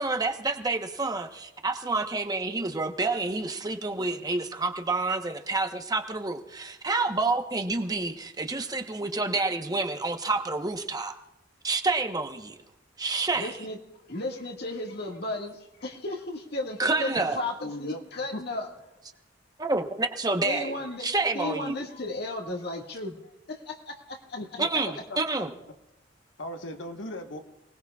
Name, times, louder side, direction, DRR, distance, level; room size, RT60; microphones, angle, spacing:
voice 1, 0.0-11.1 11.6-12.5 13.0-13.5 16.8-17.4 19.6-21.8 24.6-25.5, right 3 dB, 20° right, 6 dB, 1.0 m, -28 dB
voice 2, 13.3-13.8 14.1-18.7 20.4-21.1 21.3-23.2 23.5-24.4, left 2 dB, 60° left, 1 dB, 1.9 m, -34 dB
voice 3, 17.6-18.0 18.3-18.4 24.4-24.7 25.1-25.2 26.4-27.4, left 1 dB, 90° left, 5 dB, 1.4 m, -37 dB
29.0 x 19.5 x 2.4 m, 0.92 s
head